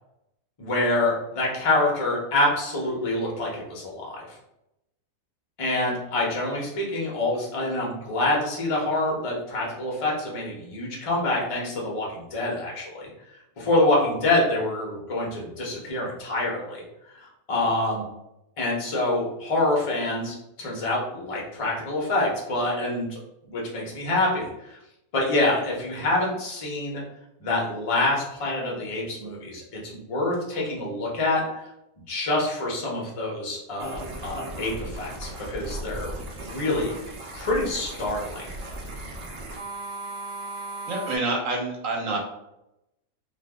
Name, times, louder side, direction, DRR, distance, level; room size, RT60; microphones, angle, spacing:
voice 1, 0.6-4.3 5.6-13.1 13.6-16.8 17.5-18.0 18.6-23.2 23.5-24.8 25.1-27.0 27.4-31.4 32.1-36.9 37.3-38.4, left 2 dB, 50° left, -3 dB, 0.3 m, -26 dB
sound 1, 33.8-41.2, right 2 dB, 90° right, 0.5 m, -37 dB
voice 2, 40.9-42.2, right 2 dB, 60° right, -1 dB, 1.0 m, -27 dB
2.5 x 2.4 x 3.5 m, 0.87 s
omnidirectional pair, 1.8 m